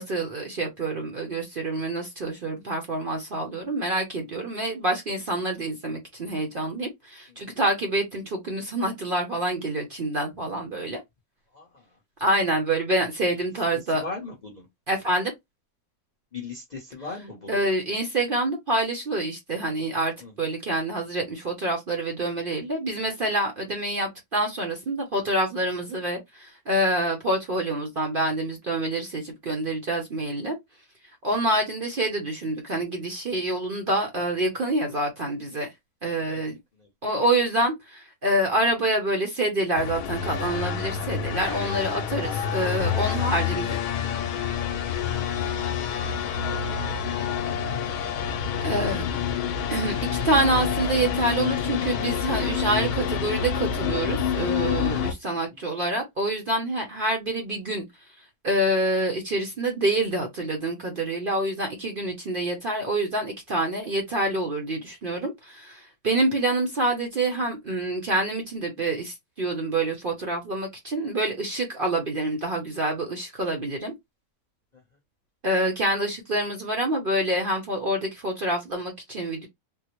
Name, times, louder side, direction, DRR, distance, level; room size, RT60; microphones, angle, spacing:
voice 1, 0.0-11.0 12.2-14.0 14.9-15.3 17.5-30.6 31.2-35.7 36.0-36.6 37.0-43.8 48.6-49.1 49.7-50.0 50.2-57.8 58.4-73.9 75.4-79.5, right 1 dB, 45° right, 0.8 m, -27 dB
voice 2, 11.5-11.8 13.9-14.7 16.3-17.6 20.2-20.4 36.3-36.5 36.8-36.9 43.4-43.6 48.5-48.7 55.3-55.4, left 3 dB, 40° left, 0.7 m, -41 dB
sound 1, 39.7-55.1, left 7 dB, 90° left, 1.1 m, -27 dB
3.6 x 2.0 x 3.0 m
omnidirectional pair, 1.6 m